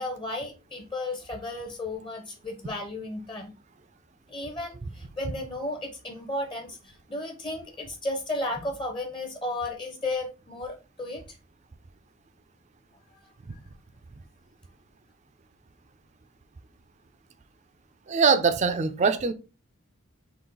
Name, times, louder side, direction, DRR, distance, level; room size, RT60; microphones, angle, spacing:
voice 1, 0.0-3.5 4.3-11.2, left 2 dB, 25° left, 0.6 m, -34 dB
voice 2, 18.1-19.3, right 5 dB, 35° right, 0.4 m, -22 dB
3.9 x 2.4 x 3.7 m
head